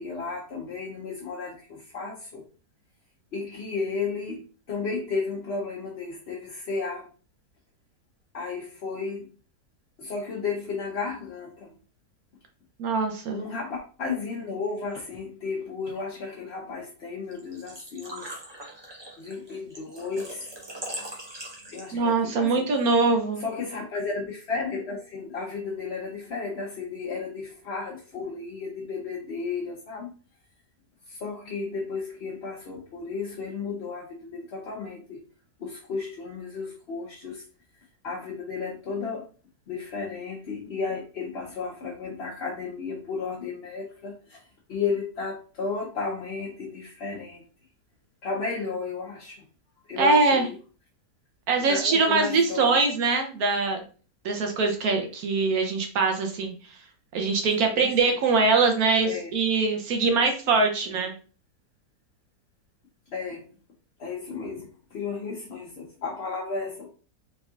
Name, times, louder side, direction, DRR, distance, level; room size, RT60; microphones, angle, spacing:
voice 1, 0.0-2.4 3.3-7.1 8.3-9.3 10.0-11.7 13.3-18.4 19.2-20.5 21.7-22.6 23.4-30.1 31.1-35.2 35.6-37.4 38.0-39.3 39.7-47.4 48.2-49.4 49.9-50.5 51.7-52.8 57.8-58.0 59.0-59.3 63.1-63.5 64.0-66.9, left 4 dB, 50° left, -3 dB, 0.9 m, -33 dB
voice 2, 12.8-13.4 21.9-23.4 50.0-50.5 51.5-53.8 54.2-56.5 57.1-61.1, right 4 dB, 70° right, 4 dB, 1.2 m, -23 dB
Engine / Trickle dribble / Fill (with liquid), 17.3-22.2, right 1 dB, 20° right, 0.7 m, -41 dB
4.1 x 3.6 x 2.4 m, 0.38 s
omnidirectional pair, 1.7 m